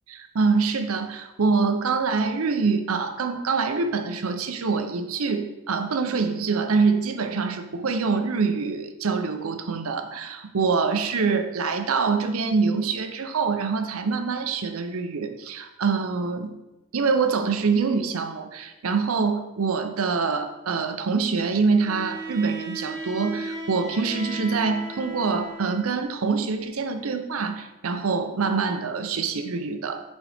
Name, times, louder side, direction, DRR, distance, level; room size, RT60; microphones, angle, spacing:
voice 1, 0.1-16.6 16.9-30.0, right 4 dB, 85° right, 7 dB, 0.6 m, -25 dB
Bowed string instrument, 21.7-26.0, right 2 dB, 15° right, 0.8 m, -37 dB
6.2 x 5.2 x 3.4 m, 1.0 s
head